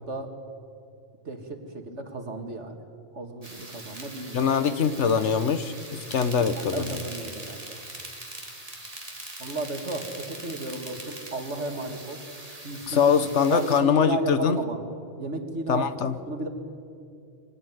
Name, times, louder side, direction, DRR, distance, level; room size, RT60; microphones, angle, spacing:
voice 1, 0.1-0.4 1.2-2.8 3.1-4.5 6.4-7.8 9.4-12.2 12.6-13.1 13.4-14.8 15.2-16.5, right 2 dB, 90° right, 5 dB, 2.5 m, -34 dB
sound 1, 3.4-13.8, right 1 dB, 30° right, 3.0 m, -42 dB
voice 2, 4.3-7.0 12.9-14.6 15.7-16.1, left 6 dB, 85° left, 12 dB, 1.4 m, -23 dB
24.0 x 17.5 x 9.4 m, 2.4 s
omnidirectional pair, 1.2 m